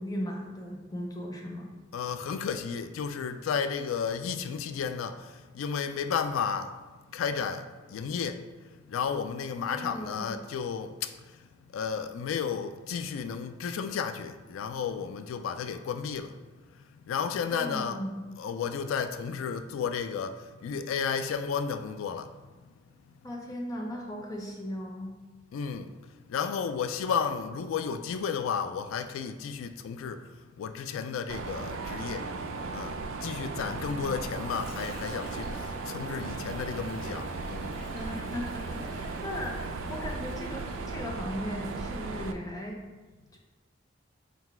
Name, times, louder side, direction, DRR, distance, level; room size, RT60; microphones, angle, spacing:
voice 1, 0.0-1.7 9.6-10.3 17.5-18.3 23.2-25.1 33.9-34.1 37.9-42.8 43.3-43.4, equal, 20° left, 0.6 m, -37 dB
voice 2, 1.9-6.7 7.1-8.4 8.9-11.1 11.7-16.3 17.1-18.0 18.4-22.3 25.5-25.9 26.3-30.2 30.6-32.3 32.7-37.8, left 6 dB, 90° left, 0.3 m, -33 dB
Mechanisms, 31.3-42.3, right 3 dB, 90° right, 0.3 m, -36 dB
Water / Sink (filling or washing), 34.0-41.4, equal, 70° left, 1.5 m, -51 dB
3.9 x 2.3 x 4.2 m
head